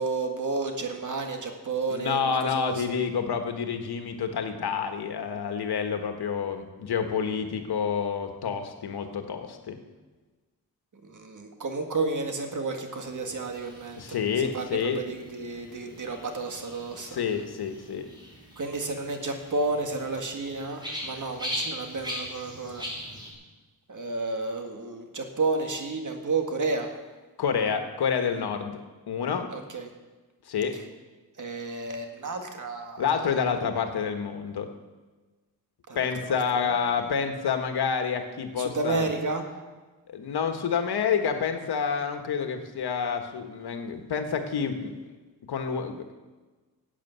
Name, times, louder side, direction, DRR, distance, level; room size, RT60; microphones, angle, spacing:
voice 1, 0.0-3.0 11.0-14.2 14.5-17.2 18.6-22.8 23.9-26.9 29.5-29.9 31.4-33.0 35.9-36.1 38.6-39.5, right 3 dB, 50° right, 4 dB, 1.9 m, -31 dB
voice 2, 1.9-9.8 14.0-15.0 16.9-18.1 27.4-28.8 29.1-29.5 30.5-30.7 33.0-34.7 35.9-39.1 40.1-44.9 45.5-46.1, left 6 dB, 90° left, 6 dB, 1.5 m, -28 dB
sound 1, 13.1-23.3, equal, 10° right, 4.7 m, -40 dB
12.0 x 8.5 x 8.2 m, 1.3 s
wide cardioid pair, 100°, 38 cm